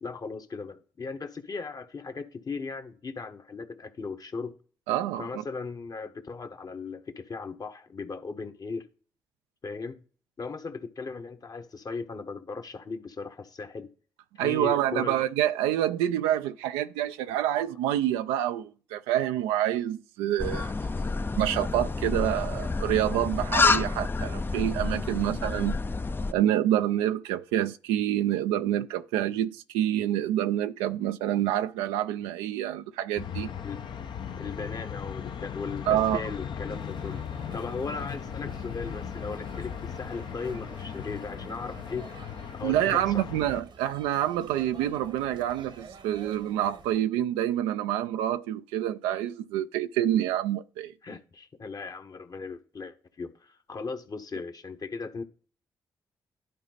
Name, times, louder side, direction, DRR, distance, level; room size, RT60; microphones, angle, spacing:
voice 1, 0.0-4.5 5.2-8.9 9.6-10.0 10.4-13.9 14.3-15.2 33.6-33.8 34.4-37.2 37.5-42.1 42.6-43.2 51.0-55.2, left 4 dB, 45° left, 1.1 m, -37 dB
voice 2, 4.9-5.3 14.4-20.7 21.4-25.8 26.3-33.5 35.9-36.2 42.6-50.9, right 12 dB, 85° right, 0.4 m, -27 dB
sound 1, 20.4-26.3, left 3 dB, 25° left, 0.4 m, -28 dB
sound 2, 33.2-43.6, left 8 dB, 60° left, 0.7 m, -37 dB
sound 3, 36.7-47.0, right 6 dB, 65° right, 1.0 m, -49 dB
11.0 x 4.1 x 4.0 m
hypercardioid pair, 45°, 9 cm